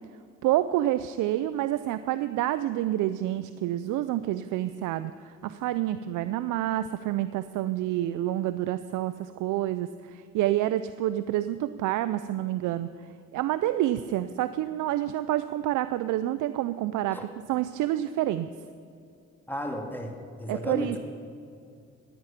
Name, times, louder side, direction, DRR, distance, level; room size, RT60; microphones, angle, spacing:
voice 1, 0.4-12.9 13.3-17.2 17.5-18.5 20.5-21.0, right 13 dB, 85° right, 13 dB, 0.5 m, -28 dB
voice 2, 19.5-21.0, equal, 5° left, 3 dB, 2.0 m, -34 dB
15.5 x 9.6 x 5.7 m, 2.4 s
cardioid pair, 90°, 30 cm